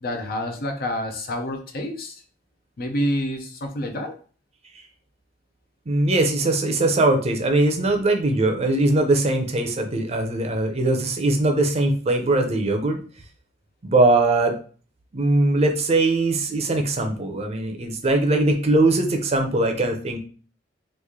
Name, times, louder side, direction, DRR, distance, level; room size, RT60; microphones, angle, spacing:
voice 1, 0.0-2.2 2.8-4.2, left 1 dB, 55° left, 5 dB, 0.6 m, -28 dB
voice 2, 5.9-13.0 13.8-14.6 15.1-20.2, right 2 dB, 35° right, 5 dB, 0.6 m, -21 dB
3.1 x 2.5 x 3.6 m, 0.40 s
head